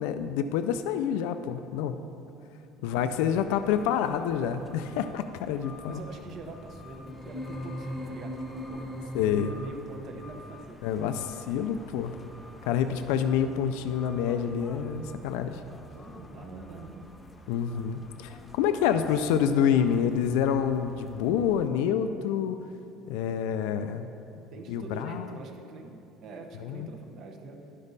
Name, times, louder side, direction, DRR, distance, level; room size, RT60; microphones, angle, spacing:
voice 1, 0.0-2.0 2.8-6.0 9.1-9.5 10.8-12.2 12.6-15.6 17.5-22.6 23.1-24.1 24.7-25.3 26.6-26.9, left 8 dB, 80° left, 9 dB, 0.3 m, -27 dB
voice 2, 2.8-4.2 5.9-11.2 15.8-17.1 18.9-19.1 19.4-19.8 24.5-27.6, right 3 dB, 45° right, 4 dB, 0.8 m, -45 dB
sound 1, 2.9-21.7, left 2 dB, 10° left, 0.4 m, -49 dB
sound 2, 7.1-9.7, equal, 10° right, 1.4 m, -38 dB
11.5 x 5.3 x 4.0 m, 2.7 s
cardioid pair, 150°, 0 cm